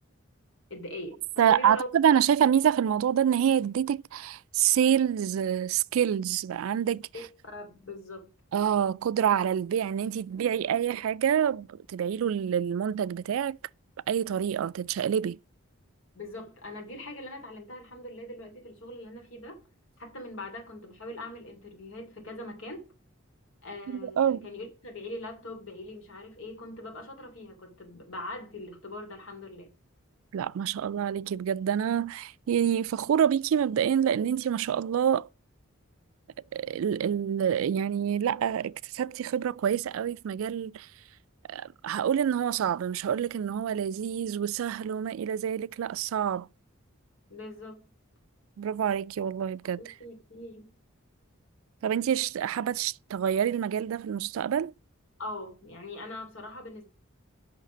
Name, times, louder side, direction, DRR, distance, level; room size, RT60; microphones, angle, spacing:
voice 1, 0.7-1.9 7.1-8.3 16.1-19.6 20.0-22.9 23.6-29.7 47.3-47.8 49.8-50.7 55.2-56.8, left 1 dB, 75° left, 3.0 m, -41 dB
voice 2, 1.4-7.1 8.5-13.6 14.1-15.4 23.9-24.5 30.3-35.3 36.5-40.9 41.5-46.5 48.6-49.8 51.8-54.7, right 9 dB, 75° right, 0.3 m, -27 dB
6.6 x 5.8 x 6.1 m
head